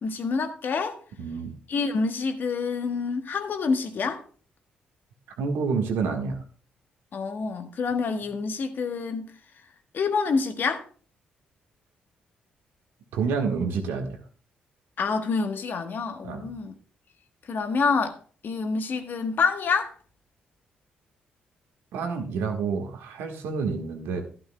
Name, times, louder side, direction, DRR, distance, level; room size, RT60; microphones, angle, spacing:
voice 1, 0.0-1.0 1.7-4.2 7.1-9.3 9.9-10.8 15.0-16.7 17.4-18.2 18.4-19.9, left 4 dB, 55° left, 1.3 m, -27 dB
voice 2, 1.2-1.5 5.4-6.4 13.1-14.2 16.2-16.5 21.9-24.2, right 5 dB, 75° right, 1.5 m, -28 dB
11.5 x 11.5 x 2.3 m
hypercardioid pair, 45°, 4 cm